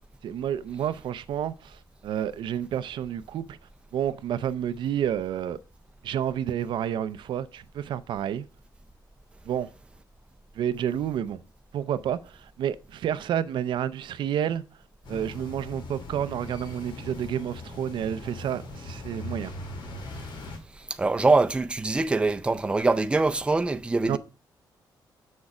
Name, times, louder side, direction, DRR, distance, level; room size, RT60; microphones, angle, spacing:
voice 1, 0.2-3.6 3.9-5.6 6.0-8.5 9.4-9.7 10.5-11.4 11.7-14.8 15.1-19.5 24.1-24.2, right 9 dB, 80° right, 0.5 m, -30 dB
sound 1, 15.0-20.6, left 1 dB, 75° left, 2.1 m, -40 dB
voice 2, 21.0-24.2, right 3 dB, 15° right, 0.5 m, -23 dB
7.0 x 6.4 x 4.9 m
wide cardioid pair, 150°, 8 cm